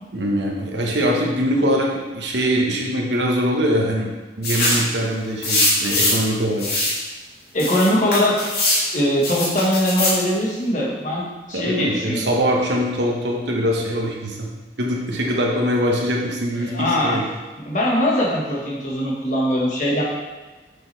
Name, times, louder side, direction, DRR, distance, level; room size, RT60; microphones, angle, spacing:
voice 1, 0.1-4.1 4.4-6.7 11.5-14.5 14.8-17.3, equal, 80° right, -1 dB, 1.3 m, -22 dB
sound 1, 4.4-4.9 5.4-6.3 6.6-7.0 7.6-8.8 9.2-10.2, left 2 dB, 60° left, 2.0 m, -21 dB
voice 2, 7.5-8.5 8.9-12.3 16.6-17.2 17.6-20.0, left 1 dB, 45° left, -4 dB, 1.6 m, -21 dB
6.7 x 6.3 x 3.4 m, 1.2 s
head